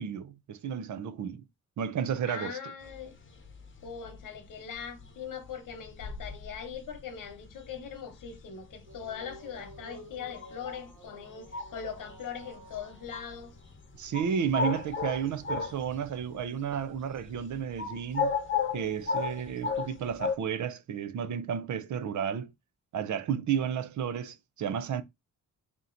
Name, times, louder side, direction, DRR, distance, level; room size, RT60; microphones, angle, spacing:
voice 1, 0.0-1.4 1.8-2.6 14.0-18.4 18.7-22.5 22.9-25.0, right 8 dB, 65° right, 0.6 m, -32 dB
voice 2, 2.2-3.1 3.8-13.5, left 7 dB, 85° left, 1.0 m, -41 dB
sound 1, 2.8-16.3 16.6-20.4, left 5 dB, 40° left, 0.9 m, -35 dB
sound 2, 8.9-16.4, right 2 dB, 85° right, 1.4 m, -53 dB
3.6 x 2.9 x 3.8 m
wide cardioid pair, 150°, 32 cm